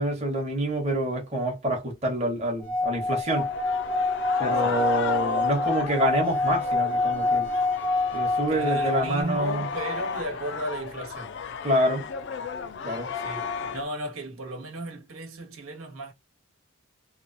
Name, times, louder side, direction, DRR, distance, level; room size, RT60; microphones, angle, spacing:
voice 1, 0.0-3.5 4.4-7.5 8.1-9.7 11.6-12.1 12.8-13.1, right 1 dB, 30° right, 1.0 m, -27 dB
Singing / Glass, 2.6-9.2, left 3 dB, 60° right, 0.6 m, -26 dB
sound 1, 3.3-13.8, left 5 dB, 55° left, 0.4 m, -34 dB
voice 2, 4.6-4.9 8.5-11.4 13.1-13.4 13.7-16.1, right 1 dB, 90° right, 1.1 m, -35 dB
3.0 x 2.3 x 2.6 m
head